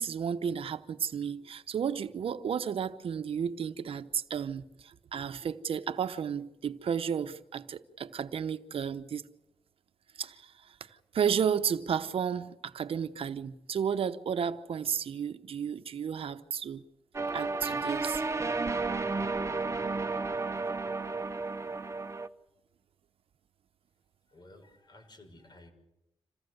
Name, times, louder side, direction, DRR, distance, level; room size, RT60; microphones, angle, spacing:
voice 1, 0.0-9.3 10.1-16.8 17.3-18.2, right 7 dB, 75° right, 1.0 m, -33 dB
sound 1, 17.1-22.3, right 3 dB, 30° right, 1.1 m, -32 dB
voice 2, 24.3-25.7, left 1 dB, 50° left, 6.3 m, -54 dB
27.5 x 16.0 x 8.0 m
cardioid pair, 75°, 10 cm